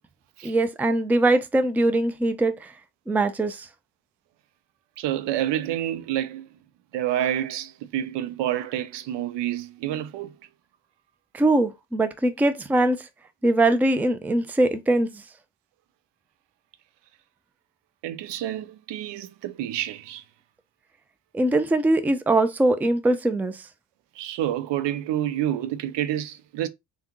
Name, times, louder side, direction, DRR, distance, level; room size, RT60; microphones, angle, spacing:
voice 1, 0.4-2.7 3.1-3.7 11.3-13.1 13.4-15.2 21.3-23.7, right 2 dB, 5° right, 0.4 m, -22 dB
voice 2, 5.0-6.5 6.9-10.4 18.0-20.2 24.2-26.7, right 12 dB, 70° right, 0.6 m, -28 dB
3.4 x 2.3 x 3.0 m
supercardioid pair, 60°, 45 cm